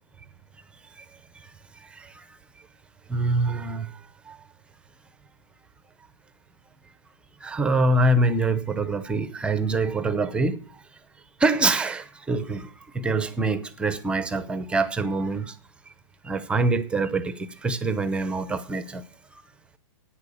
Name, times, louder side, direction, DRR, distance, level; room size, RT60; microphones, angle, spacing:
voice 1, 1.3-2.3 3.1-4.0 4.3-4.4 7.4-10.8 11.4-15.6 16.2-19.0 19.3-19.4, right 2 dB, 5° right, 0.6 m, -25 dB
10.5 x 9.2 x 7.0 m
hypercardioid pair, 155°, 16 cm